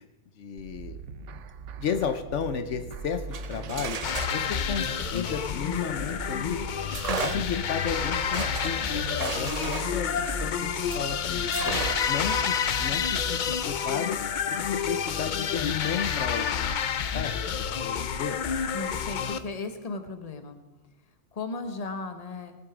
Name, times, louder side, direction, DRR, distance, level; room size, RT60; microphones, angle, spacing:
voice 1, 0.4-1.0 1.8-4.0 4.3-6.6 7.2-11.7 12.1-14.2 14.5-16.8 17.1-17.4 17.8-18.4, left 7 dB, 75° left, 8 dB, 1.1 m, -33 dB
sound 1, 0.6-13.6, right 5 dB, 85° right, 1.0 m, -41 dB
sound 2, 3.2-6.3 6.9-11.1 11.5-12.3, right 6 dB, 45° right, 0.6 m, -36 dB
sound 3, 4.0-19.4, left 7 dB, 55° left, 0.6 m, -29 dB
voice 2, 18.7-20.6 21.3-22.6, left 3 dB, 35° left, 7 dB, 1.1 m, -36 dB
19.0 x 7.5 x 5.0 m, 1.1 s
omnidirectional pair, 1.2 m